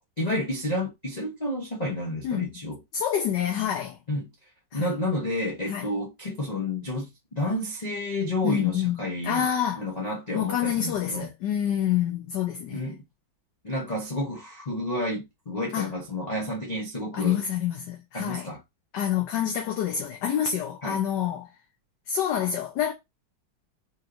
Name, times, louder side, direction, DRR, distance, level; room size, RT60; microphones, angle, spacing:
voice 1, 0.2-2.8 4.1-4.3 4.7-7.1 7.3-9.5 9.8-11.3 12.7-13.0 13.6-17.4 18.1-18.6 20.8-21.0, left 1 dB, 35° left, 0.6 m, -30 dB
voice 2, 2.2-2.5 2.9-4.0 4.7-4.9 5.7-5.9 8.4-9.8 10.3-13.0 15.7-15.9 17.1-18.5 18.9-21.5 22.1-22.9, left 9 dB, 70° left, 1.3 m, -27 dB
5.2 x 3.1 x 2.5 m
omnidirectional pair, 2.1 m